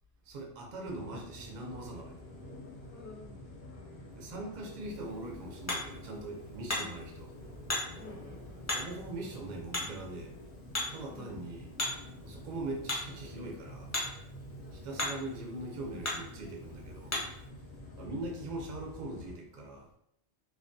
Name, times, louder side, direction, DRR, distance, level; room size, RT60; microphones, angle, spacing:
voice 1, 0.2-2.2 4.1-7.3 8.7-10.3 10.9-11.7 12.2-13.9 14.7-17.2 18.0-19.9, right 2 dB, 55° right, 0 dB, 0.5 m, -41 dB
sound 1, 0.8-19.4, left 1 dB, 60° left, 0.7 m, -48 dB
voice 2, 2.9-3.4 6.8-7.0 8.0-8.7 11.1-11.4 14.6-14.9 17.8-18.1, left 5 dB, 80° left, -4 dB, 1.0 m, -52 dB
Hammer, 4.8-17.5, left 1 dB, 20° left, 0.5 m, -40 dB
2.3 x 2.2 x 2.5 m, 0.73 s
omnidirectional pair, 1.1 m